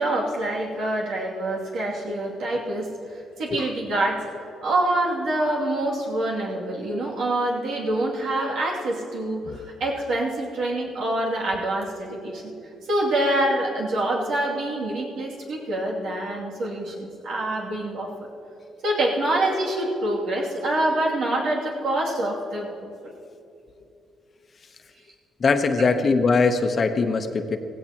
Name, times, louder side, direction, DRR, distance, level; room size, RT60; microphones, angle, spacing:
voice 1, 0.0-4.2 4.6-12.5 12.9-18.3 18.8-23.1 25.8-25.9, right 1 dB, 80° right, -4 dB, 2.7 m, -26 dB
voice 2, 25.4-27.6, left 4 dB, 40° left, 7 dB, 0.9 m, -21 dB
16.5 x 16.0 x 3.0 m, 2.6 s
cardioid pair, 90°, 0 cm